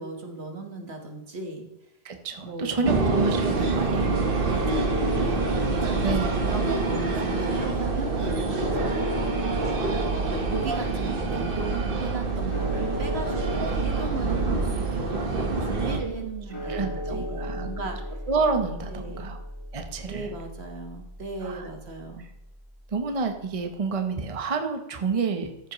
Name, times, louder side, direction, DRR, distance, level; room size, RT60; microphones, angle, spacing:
voice 1, 0.0-1.7 2.4-3.0 4.3-9.3 9.7-18.0 18.9-19.3 20.1-22.3, right 3 dB, 75° right, 4 dB, 1.7 m, -37 dB
voice 2, 2.0-4.4 6.0-6.3 16.7-17.7 18.3-19.4 19.7-20.3 21.4-21.7 22.9-25.7, right 4 dB, 35° right, 5 dB, 0.9 m, -29 dB
sound 1, 2.8-16.0, right 3 dB, 55° right, 1.4 m, -26 dB
sound 2, 4.5-22.7, equal, 30° left, 1.5 m, -35 dB
14.0 x 7.4 x 3.1 m, 0.95 s
omnidirectional pair, 1.1 m